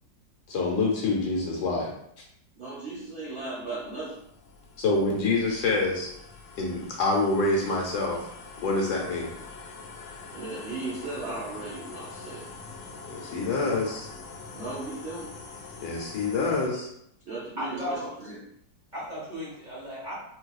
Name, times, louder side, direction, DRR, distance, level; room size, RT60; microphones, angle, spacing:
voice 1, 0.5-1.9 4.8-6.1 6.5-8.3 8.6-9.3 13.1-14.1 15.8-16.9, left 3 dB, 70° left, -2 dB, 1.2 m, -26 dB
voice 2, 2.6-4.2 10.3-12.5 14.5-15.3 17.3-18.4, right 3 dB, 55° right, -7 dB, 0.7 m, -36 dB
sound 1, 3.3-16.7, left 4 dB, 85° left, 0.7 m, -45 dB
voice 3, 17.6-18.2 18.9-20.2, equal, 30° right, -8 dB, 1.0 m, -35 dB
4.0 x 2.6 x 2.3 m, 0.74 s
omnidirectional pair, 2.0 m